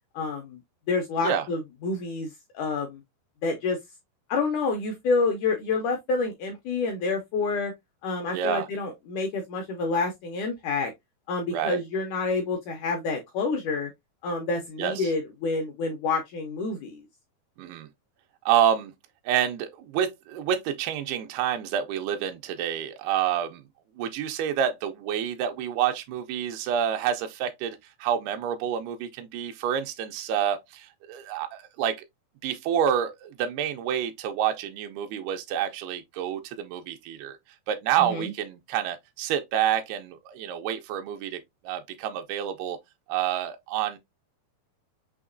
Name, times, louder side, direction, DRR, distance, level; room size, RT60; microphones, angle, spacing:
voice 1, 0.1-0.6 0.9-3.0 3.4-3.8 4.3-7.7 8.0-10.9 11.3-13.9 14.2-17.0 38.0-38.3, left 3 dB, 85° left, 1.8 m, -28 dB
voice 2, 8.3-8.7 11.5-11.8 14.8-15.1 17.6-17.9 18.5-18.9 19.3-23.6 24.0-32.0 32.4-37.4 37.7-42.8 43.1-44.0, right 9 dB, 90° right, 2.6 m, -28 dB
6.2 x 2.8 x 2.5 m
omnidirectional pair, 4.4 m